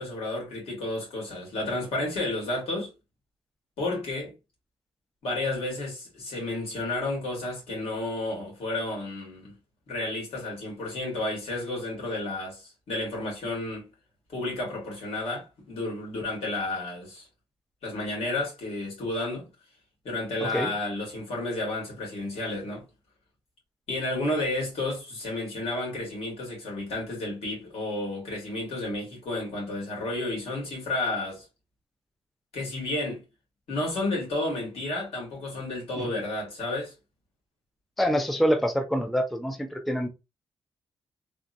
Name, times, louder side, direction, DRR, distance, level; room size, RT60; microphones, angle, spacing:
voice 1, 0.0-2.9 3.8-4.3 5.2-9.5 9.9-13.9 14.3-17.2 17.8-19.5 20.0-22.8 23.9-31.4 32.5-33.2 33.7-36.9, left 2 dB, 75° left, 1.9 m, -31 dB
voice 2, 20.4-20.7 36.0-36.2 38.0-40.1, equal, ahead, 0.3 m, -26 dB
3.5 x 2.1 x 2.5 m
wide cardioid pair, 155°, 10 cm